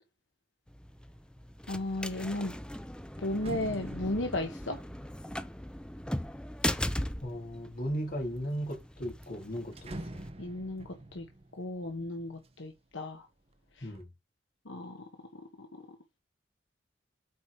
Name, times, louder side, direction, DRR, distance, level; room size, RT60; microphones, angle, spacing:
sound 1, 0.7-10.3, left 1 dB, 5° left, 0.5 m, -39 dB
sound 2, 1.0-1.3 1.7-7.1 7.7-8.4 8.7-8.8 9.1-13.0 13.4-14.0, right 1 dB, 35° right, 1.0 m, -48 dB
voice 1, 1.7-2.5 3.2-4.8 10.4-11.2 11.5-13.3 13.8-13.9 14.6-15.1 15.6-15.7, left 1 dB, 80° left, 1.2 m, -35 dB
voice 2, 7.2-10.2 13.8-14.1, equal, 50° left, 2.9 m, -36 dB
8.2 x 4.6 x 4.7 m
head